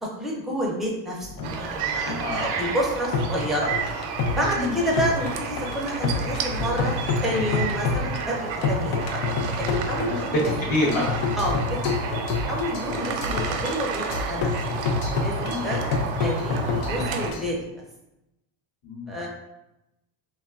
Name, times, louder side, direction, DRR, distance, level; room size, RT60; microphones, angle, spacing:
voice 1, 0.0-1.3 1.6-2.3 2.6-3.7 4.3-7.0 7.2-9.2 9.6-10.5 11.4-11.8 12.0-12.2 12.5-14.5 14.9-15.8 16.2-17.6 19.1-19.3, equal, ahead, -3 dB, 0.5 m, -29 dB
sound 1, 1.2-17.5, left 4 dB, 85° left, 0.6 m, -29 dB
sound 2, 1.4-17.3, right 6 dB, 85° right, 0.5 m, -32 dB
voice 2, 2.2-2.6 4.6-4.7 10.0-11.2 15.4-15.7 18.8-19.2, left 1 dB, 55° left, -4 dB, 0.9 m, -26 dB
3.0 x 2.3 x 2.3 m, 0.90 s
cardioid pair, 120°, 40 cm